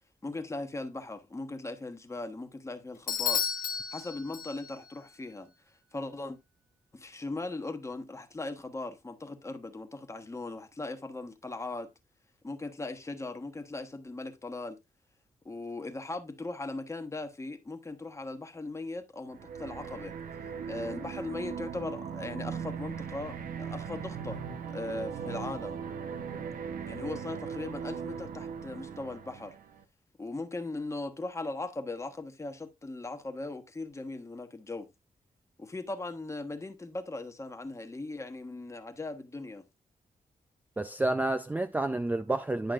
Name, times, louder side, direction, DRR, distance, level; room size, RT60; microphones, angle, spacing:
voice 1, 0.2-3.4 3.9-5.5 5.9-6.4 6.9-11.9 12.4-14.8 15.4-20.2 20.7-24.4 24.7-25.8 26.9-29.5 30.2-34.9 35.6-39.6, left 2 dB, 20° left, 1.2 m, -39 dB
Bell / Doorbell, 3.1-4.9, left 7 dB, 75° left, 1.4 m, -32 dB
sound 1, 19.3-29.8, right 7 dB, 85° right, 0.9 m, -39 dB
voice 2, 40.8-42.7, right 2 dB, 10° right, 0.4 m, -29 dB
10.5 x 5.8 x 2.5 m
cardioid pair, 95°, 14 cm